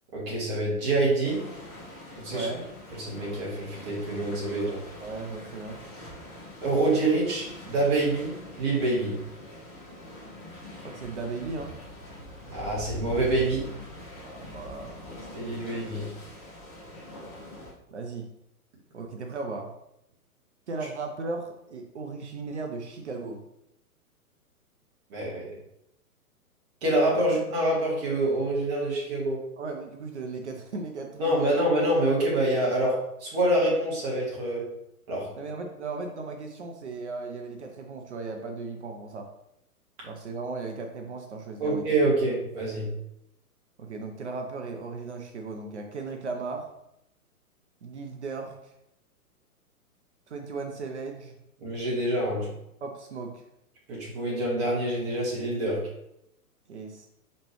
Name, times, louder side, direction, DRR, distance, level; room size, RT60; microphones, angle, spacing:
voice 1, 0.1-1.4 2.1-2.5 3.0-4.8 6.6-9.2 12.5-13.7 15.3-16.1 25.1-25.5 26.8-29.4 31.2-34.7 35.1-35.3 41.6-42.9 51.6-52.5 53.9-55.9, right 1 dB, 30° right, -4 dB, 1.5 m, -26 dB
sound 1, 1.2-17.7, left 1 dB, 20° left, 1.0 m, -44 dB
voice 2, 2.3-2.7 5.0-5.8 10.8-11.7 14.2-15.7 17.9-18.3 18.9-19.7 20.7-23.4 27.1-27.2 29.6-31.6 35.4-39.3 40.0-41.8 43.8-46.7 47.8-48.7 50.3-51.4 52.8-53.4 56.7-57.1, right 3 dB, 50° right, 3 dB, 0.6 m, -36 dB
4.2 x 3.1 x 3.1 m, 0.81 s
figure-of-eight pair, 115°, 45 cm